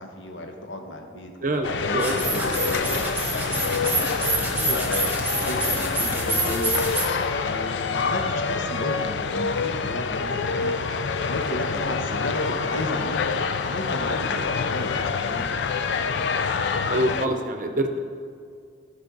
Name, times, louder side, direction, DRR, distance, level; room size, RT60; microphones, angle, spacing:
voice 1, 0.0-1.3 1.8-3.0 3.4-6.7 7.4-10.9 11.2-15.7, left 1 dB, 85° left, 3 dB, 1.1 m, -34 dB
voice 2, 1.4-2.2 16.9-18.0, right 1 dB, 45° right, 6 dB, 0.7 m, -25 dB
sound 1, 1.6-17.3, left 5 dB, 65° left, 0.4 m, -26 dB
sound 2, 2.0-7.1, right 2 dB, 10° right, 1.1 m, -27 dB
12.5 x 5.4 x 4.0 m, 2.2 s
head